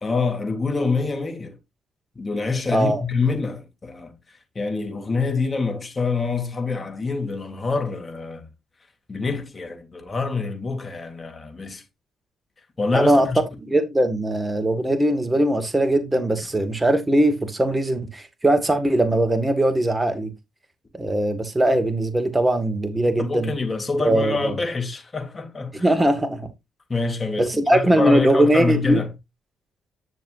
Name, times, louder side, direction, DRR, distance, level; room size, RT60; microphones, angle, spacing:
voice 1, 0.0-1.6 2.2-8.5 9.1-11.8 12.8-13.4 23.2-25.9 26.9-29.1, left 4 dB, 30° left, 3.3 m, -26 dB
voice 2, 2.7-3.0 12.9-13.3 13.6-20.3 20.9-23.5 24.0-24.5 25.8-26.5 27.4-29.0, right 1 dB, 15° right, 1.9 m, -20 dB
10.5 x 6.7 x 2.7 m
cardioid pair, 90°, 0 cm